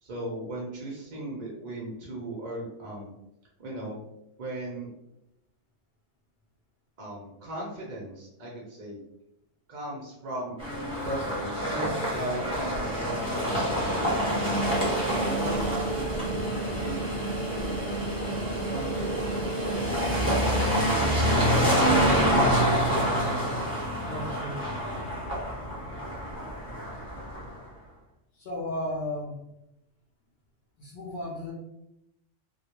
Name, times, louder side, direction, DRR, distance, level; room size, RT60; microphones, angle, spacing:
voice 1, 0.0-3.1 3.6-4.0 4.4-4.9 7.0-9.0 9.7-10.6 11.0-14.3 15.0-17.8 18.4-21.6, right 1 dB, 50° right, -3 dB, 0.5 m, -38 dB
sound 1, 10.6-27.6, right 1 dB, 5° right, 0.8 m, -27 dB
voice 2, 24.1-24.7 28.4-29.4 30.8-31.5, left 1 dB, 55° left, -4 dB, 0.6 m, -34 dB
2.2 x 2.1 x 2.8 m, 0.84 s
omnidirectional pair, 1.3 m